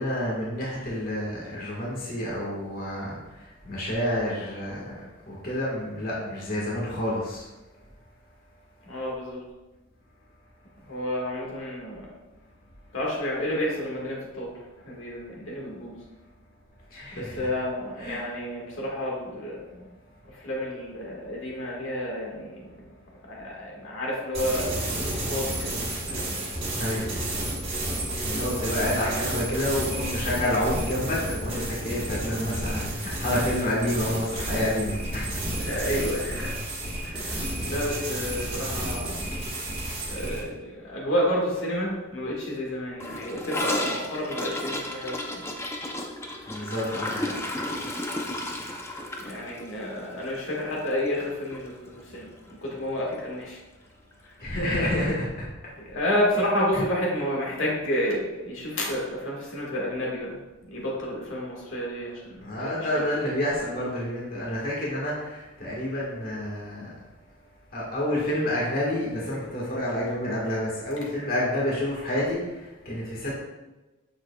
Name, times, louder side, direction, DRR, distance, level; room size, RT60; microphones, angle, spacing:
voice 1, 0.0-4.9 5.3-7.4 16.9-17.5 18.0-18.3 26.7-27.1 28.2-35.4 46.5-47.4 54.4-55.3 56.7-56.8 57.1-57.3 62.4-66.9 67.7-73.4, left 1 dB, 45° left, -5 dB, 1.6 m, -29 dB
voice 2, 8.9-9.4 10.9-12.1 12.9-14.5 14.9-15.9 17.1-19.9 20.4-22.7 23.3-25.8 26.1-26.5 35.6-36.5 37.0-39.2 40.1-45.4 49.2-53.6 55.8-60.4 60.7-63.1, equal, 70° left, -4 dB, 1.8 m, -30 dB
sound 1, 24.3-40.4, right 1 dB, 30° right, 1.5 m, -31 dB
Gurgling / Toilet flush, 43.0-51.3 51.5-51.7 51.9-52.4 52.7-52.8 53.1-53.2 54.1-54.2, left 1 dB, 10° left, 0.5 m, -33 dB
7.8 x 6.4 x 2.4 m, 1.1 s
head